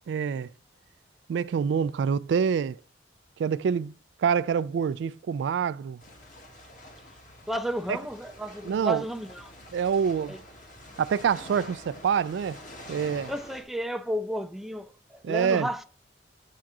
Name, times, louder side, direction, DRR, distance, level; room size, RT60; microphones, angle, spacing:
voice 1, 0.1-0.5 1.3-2.8 3.4-3.9 4.2-6.0 8.6-9.0 9.7-10.3 11.0-12.6 12.9-13.3 15.2-15.7, right 7 dB, 85° right, 0.3 m, -26 dB
sound 1, 6.0-13.6, left 1 dB, 45° left, 1.9 m, -47 dB
voice 2, 7.5-9.5 10.3-10.4 13.3-15.8, right 1 dB, ahead, 0.3 m, -32 dB
8.7 x 3.7 x 4.7 m
head